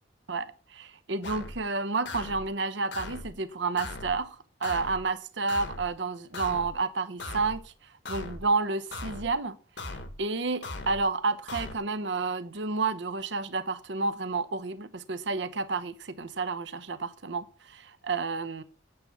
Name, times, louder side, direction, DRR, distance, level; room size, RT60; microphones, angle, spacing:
voice 1, 0.3-7.7 8.1-9.6 9.8-9.9 10.2-18.6, right 4 dB, 65° right, 0.8 m, -30 dB
sound 1, 1.2-1.6 2.1-2.5 2.9-3.3 3.8-4.2 4.6-5.1 5.5-5.9 6.3-6.8 7.2-7.6 8.1-8.5 8.9-9.3 9.8-10.2 10.6-11.1 11.5-11.8, left 2 dB, 65° left, 1.5 m, -39 dB
8.8 x 8.1 x 7.1 m
head